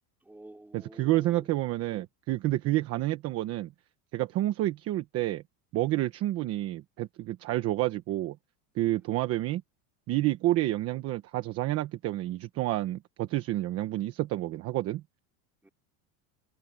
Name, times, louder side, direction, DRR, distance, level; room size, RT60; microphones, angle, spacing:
voice 1, 0.2-1.5 15.6-15.7, right 2 dB, 5° right, 3.8 m, -49 dB
voice 2, 0.7-3.7 4.1-5.4 5.7-8.4 8.7-9.6 10.1-15.0, right 16 dB, 30° right, 1.1 m, -29 dB
cardioid pair, 175°, 44 cm